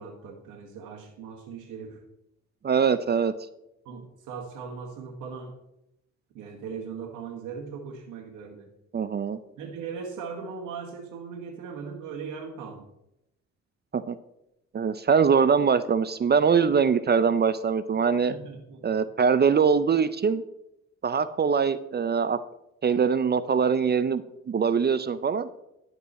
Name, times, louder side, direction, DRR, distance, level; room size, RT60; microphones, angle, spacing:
voice 1, 0.0-2.0 3.8-5.6 6.3-8.7 9.6-12.9 18.3-19.0, right 5 dB, 90° right, 1 dB, 1.4 m, -39 dB
voice 2, 2.6-3.3 8.9-9.4 13.9-14.2 14.7-18.3 18.8-20.4 21.0-22.4 22.8-25.5, right 6 dB, 35° right, 14 dB, 0.5 m, -23 dB
11.0 x 8.0 x 4.2 m, 0.85 s
cardioid pair, 90°, 30 cm